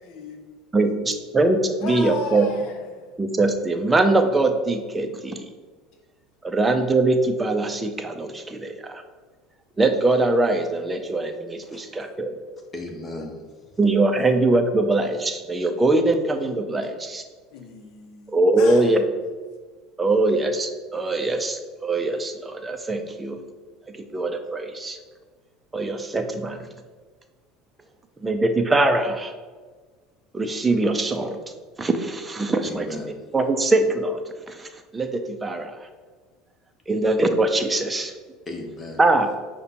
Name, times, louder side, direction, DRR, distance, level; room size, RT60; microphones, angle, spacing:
voice 1, 0.0-0.4 0.8-1.2 1.8-3.1 14.1-14.3 17.5-19.0, left 4 dB, 60° left, 0.7 m, -36 dB
voice 2, 0.7-2.5 3.2-5.4 6.4-9.0 9.8-12.3 13.8-17.2 18.3-19.0 20.0-23.4 23.9-25.0 25.7-26.7 28.2-29.3 30.3-31.4 31.8-33.0 33.3-34.2 34.5-35.8 36.9-38.1 39.0-39.3, right 2 dB, 15° right, 0.5 m, -22 dB
voice 3, 11.7-12.2 12.7-13.4 32.6-33.1 38.5-39.0, left 2 dB, 25° left, 0.9 m, -35 dB
5.0 x 2.2 x 4.4 m
figure-of-eight pair, 70°, 0 cm